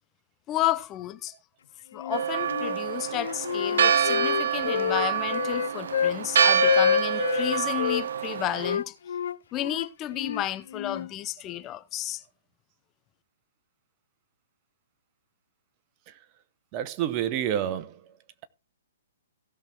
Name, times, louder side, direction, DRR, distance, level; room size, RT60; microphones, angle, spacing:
voice 1, 0.5-1.3 1.9-8.9 9.5-12.2, left 14 dB, 25° left, 0.8 m, -32 dB
Wind instrument woodwind instrument, 1.9-2.8 3.1-6.2 6.6-8.0 8.6-11.1, left 8 dB, 70° left, 0.4 m, -28 dB
Church bell, 2.1-8.8, right 8 dB, 70° right, 0.7 m, -26 dB
voice 2, 16.7-17.9, right 10 dB, 35° right, 1.0 m, -28 dB
16.5 x 6.0 x 3.6 m
hypercardioid pair, 130°, 0 cm